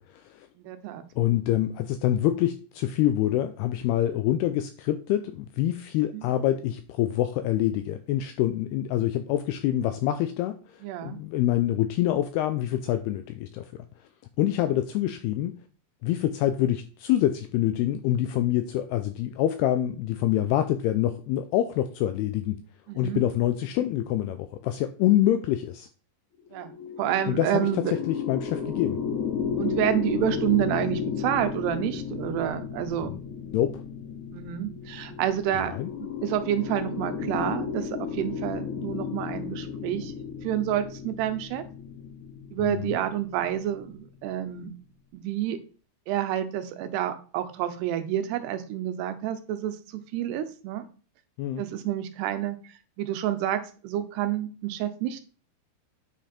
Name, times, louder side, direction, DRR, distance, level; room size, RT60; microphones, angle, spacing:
voice 1, 0.0-0.5 1.2-13.7 14.4-15.5 16.0-22.6 22.9-25.9 27.3-29.0 33.1-33.8 35.7-35.9 42.6-42.9 51.4-51.6, left 12 dB, 85° left, 9 dB, 2.3 m, -26 dB
voice 2, 0.6-1.0 6.1-6.2 10.8-11.2 22.9-23.2 26.5-26.7 27.0-27.9 29.6-33.1 34.3-40.1 40.4-41.6 42.5-44.7 45.1-45.6 46.1-50.8 51.6-52.6 53.0-55.2, right 11 dB, 80° right, 10 dB, 2.7 m, -29 dB
sound 1, 26.5-43.9, left 7 dB, 55° left, 2.5 m, -34 dB
9.0 x 5.0 x 4.3 m, 0.38 s
omnidirectional pair, 5.1 m